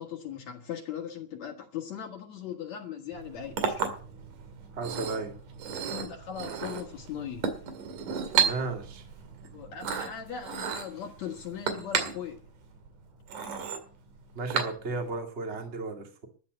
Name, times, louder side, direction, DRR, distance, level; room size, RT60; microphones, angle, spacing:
voice 1, 0.0-3.8 5.8-7.5 9.5-12.4, left 8 dB, 65° left, 3.0 m, -39 dB
Chink clink, 3.1-15.2, right 7 dB, 90° right, 3.7 m, -33 dB
voice 2, 4.7-5.4 8.4-9.0 14.4-16.3, right 3 dB, 20° right, 2.4 m, -34 dB
13.5 x 9.7 x 7.8 m
omnidirectional pair, 3.6 m